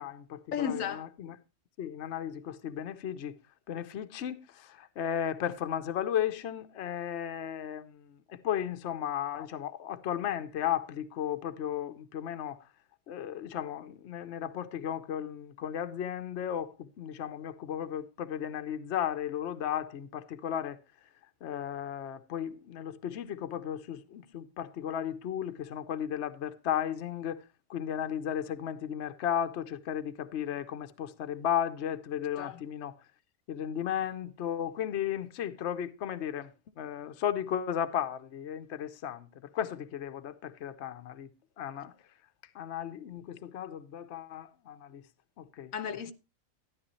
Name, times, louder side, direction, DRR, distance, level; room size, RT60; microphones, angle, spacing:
voice 1, 0.0-1.4 1.8-3.3 3.7-12.7 13.1-20.8 21.4-27.4 27.7-32.9 33.5-36.5 36.8-41.3 41.6-41.9 42.5-45.0 45.4-45.7, left 9 dB, 60° left, 1.0 m, -35 dB
voice 2, 0.5-1.1 9.3-9.5 32.4-32.6 45.7-46.1, left 8 dB, 75° left, 1.1 m, -34 dB
13.0 x 10.5 x 3.0 m
omnidirectional pair, 1.4 m